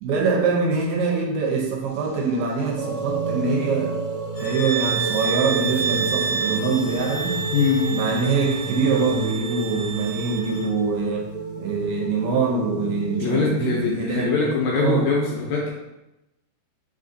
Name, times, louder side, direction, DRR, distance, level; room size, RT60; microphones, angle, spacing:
voice 1, 0.0-3.9 4.4-7.4 7.9-11.3 11.6-14.4 14.8-15.1, right 4 dB, 75° right, 1 dB, 1.8 m, -24 dB
sound 1, 1.9-9.3, right 2 dB, 40° right, 1.5 m, -40 dB
sound 2, 2.7-13.8, right 5 dB, 60° right, 1.7 m, -31 dB
sound 3, 4.3-10.7, right 6 dB, 40° left, 1.3 m, -29 dB
voice 2, 7.5-8.0 13.2-15.7, left 4 dB, 75° left, -3 dB, 1.8 m, -22 dB
4.1 x 3.8 x 2.5 m, 0.92 s
omnidirectional pair, 3.7 m